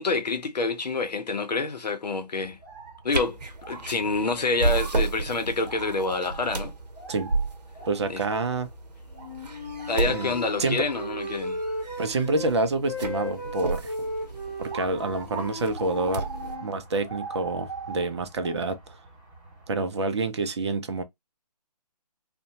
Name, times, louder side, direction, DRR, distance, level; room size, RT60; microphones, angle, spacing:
voice 1, 0.0-2.6 3.0-3.4 3.7-6.7 8.1-8.2 9.9-11.6, left 3 dB, 85° left, 0.7 m, -27 dB
sound 1, 2.4-19.8, right 4 dB, 20° right, 1.5 m, -43 dB
sound 2, 3.1-16.6, right 3 dB, 85° right, 0.7 m, -33 dB
voice 2, 7.9-8.7 10.0-10.9 12.0-13.9 14.6-16.3 16.6-19.0 19.7-21.0, right 3 dB, 45° right, 0.5 m, -28 dB
Wind instrument woodwind instrument, 9.2-12.5 12.8-16.7, left 1 dB, 30° left, 0.7 m, -36 dB
2.5 x 2.2 x 2.7 m
figure-of-eight pair, 155°, 21 cm